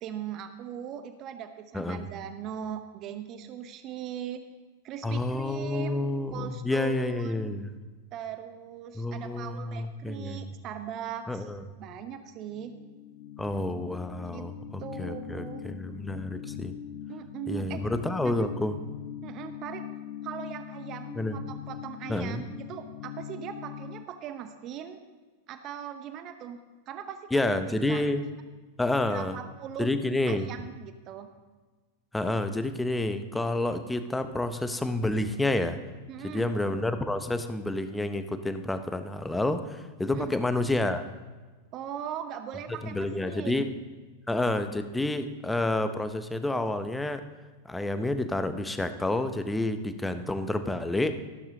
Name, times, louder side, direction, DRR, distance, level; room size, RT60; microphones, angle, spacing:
voice 1, 0.0-4.4 4.8-6.1 6.3-7.6 8.1-11.5 11.8-12.7 14.3-14.5 14.8-15.7 17.1-17.8 18.2-18.5 19.2-19.9 20.2-25.0 25.5-26.6 26.9-28.0 29.0-29.9 30.3-31.3 36.1-36.5 40.1-40.3 41.7-43.7, right 9 dB, 35° right, 9 dB, 0.8 m, -39 dB
voice 2, 1.7-2.1 5.0-7.8 8.9-10.5 11.3-11.6 13.4-16.7 17.5-18.7 21.1-21.4 22.1-22.4 27.3-28.2 28.8-29.4 29.8-30.5 32.1-35.8 36.2-41.1 42.9-43.7 44.3-47.2 47.7-51.2, left 2 dB, 5° left, 10 dB, 0.7 m, -29 dB
sound 1, 12.4-24.1, left 11 dB, 50° left, 0.5 m, -42 dB
14.0 x 12.0 x 2.8 m, 1.3 s
figure-of-eight pair, 90°, 0 cm